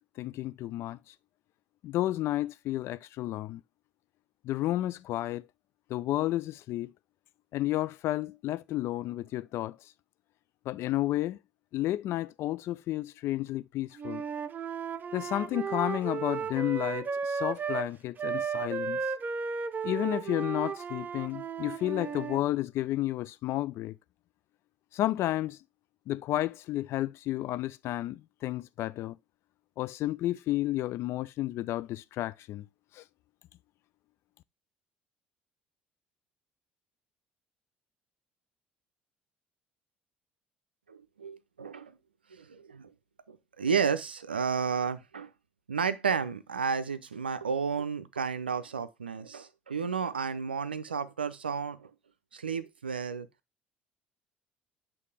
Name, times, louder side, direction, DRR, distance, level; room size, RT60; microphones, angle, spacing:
voice 1, 0.2-1.0 1.8-3.6 4.4-5.4 5.9-6.9 7.5-9.8 10.7-11.4 11.7-14.2 15.1-19.0 19.8-24.0 24.9-25.6 26.1-29.2 29.8-32.7 33.0-33.1, left 14 dB, 55° left, 0.4 m, -31 dB
Wind instrument woodwind instrument, 14.0-17.9 18.2-22.4, right 6 dB, 35° right, 0.7 m, -34 dB
voice 2, 40.9-42.0 42.3-42.9 43.3-45.3 45.7-51.9 52.3-53.3, right 6 dB, 90° right, 0.5 m, -32 dB
8.2 x 3.0 x 4.7 m
figure-of-eight pair, 55°, 5 cm